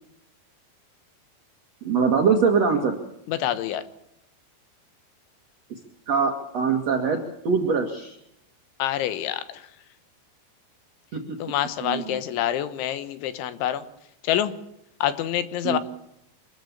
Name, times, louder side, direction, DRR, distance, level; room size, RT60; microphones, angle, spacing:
voice 1, 1.8-3.0 6.1-7.2 7.4-8.2 11.1-11.2 11.8-12.2 15.6-15.8, right 5 dB, 50° right, 3 dB, 2.2 m, -22 dB
voice 2, 3.3-3.8 8.8-9.4 11.4-13.8 14.2-14.5 15.0-15.8, left 11 dB, 85° left, 12 dB, 3.7 m, -26 dB
25.0 x 14.5 x 8.6 m, 0.80 s
omnidirectional pair, 5.2 m